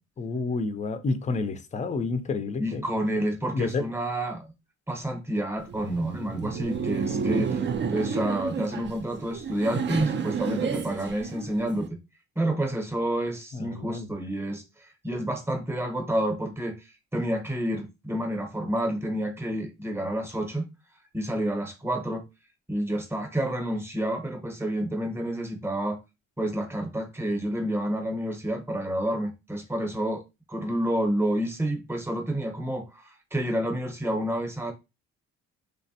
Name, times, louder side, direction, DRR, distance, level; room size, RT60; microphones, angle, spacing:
voice 1, 0.2-2.8 3.5-3.9 13.5-14.1, left 3 dB, 25° left, 0.4 m, -29 dB
voice 2, 2.6-4.5 4.9-11.9 12.4-16.8 17.1-20.7 21.1-22.2 22.7-26.0 26.4-30.2 30.5-34.7, right 1 dB, 10° right, 0.8 m, -29 dB
Laughter, 5.6-11.9, right 6 dB, 40° right, 0.4 m, -31 dB
3.2 x 2.1 x 2.7 m
cardioid pair, 90°, 30 cm